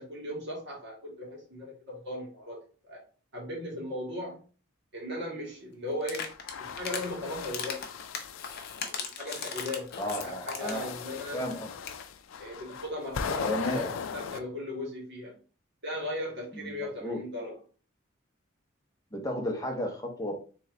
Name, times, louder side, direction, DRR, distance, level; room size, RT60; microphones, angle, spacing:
voice 1, 0.0-2.6 2.9-3.0 3.3-4.4 4.9-6.3 6.6-7.9 8.7-9.9 10.2-11.4 12.4-15.3 15.8-17.6, left 1 dB, 60° right, -3 dB, 1.9 m, -37 dB
sound 1, 6.0-7.1 7.4-10.9 11.2-11.3 11.5-11.6 11.8-12.0, left 6 dB, 50° left, 0.7 m, -37 dB
sound 2, 6.3-8.9 9.5-14.4, left 6 dB, 80° left, 0.4 m, -38 dB
voice 2, 10.0-10.9 11.3-11.7 13.4-14.0 16.5-17.2 19.1-20.3, left 1 dB, 20° left, 1 dB, 0.9 m, -33 dB
3.3 x 3.1 x 3.8 m, 0.38 s
head